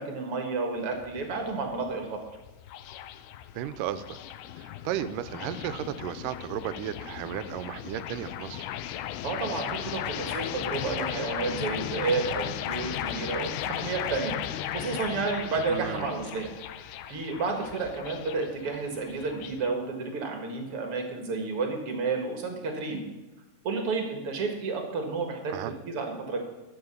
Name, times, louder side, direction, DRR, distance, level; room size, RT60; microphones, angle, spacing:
voice 1, 0.0-2.2 9.2-14.4 14.7-16.5 16.8-23.0 23.6-26.4, right 4 dB, 50° right, 3 dB, 2.2 m, -31 dB
sound 1, 0.7-19.7, left 11 dB, 90° left, 2.2 m, -36 dB
voice 2, 3.6-4.2 4.6-8.7 15.7-16.1 25.5-25.7, right 11 dB, 80° right, 13 dB, 2.2 m, -34 dB
11.5 x 7.8 x 6.8 m, 1.1 s
omnidirectional pair, 3.8 m